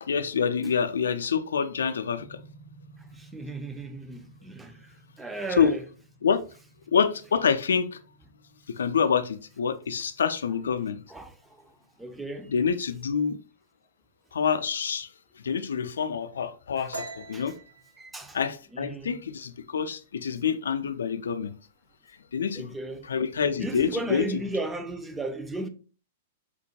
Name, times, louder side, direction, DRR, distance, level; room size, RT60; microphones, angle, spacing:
voice 1, 0.0-2.4 5.6-5.7 6.2-6.4 6.9-8.0 8.7-11.0 12.5-13.4 14.3-15.1 15.4-17.5 18.3-21.5 22.3-22.7 23.1-24.3, left 6 dB, 70° left, 0.3 m, -26 dB
sound 1, 2.2-11.9, right 2 dB, 70° right, 1.4 m, -56 dB
voice 2, 3.1-5.8 11.1-12.5 16.8-16.9 17.3-17.4 18.0-18.4 18.7-19.2 22.5-23.1 23.6-25.7, right 2 dB, 10° right, 0.4 m, -35 dB
sound 2, 16.9-20.4 20.7-21.0 21.4-21.9 22.2-22.9, right 2 dB, 90° right, 0.6 m, -43 dB
4.4 x 2.1 x 2.8 m
figure-of-eight pair, 105°, 0 cm